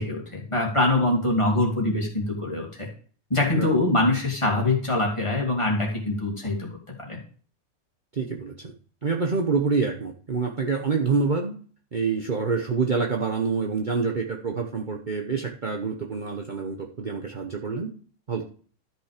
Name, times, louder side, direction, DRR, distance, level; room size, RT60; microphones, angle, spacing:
voice 1, 0.0-2.9 3.3-6.7 7.0-7.2, left 2 dB, 20° left, -2 dB, 2.6 m, -24 dB
voice 2, 8.1-8.7 9.0-11.6 11.9-17.9 18.3-18.4, right 4 dB, 40° right, 2 dB, 1.0 m, -26 dB
13.0 x 6.0 x 5.0 m, 0.44 s
omnidirectional pair, 1.5 m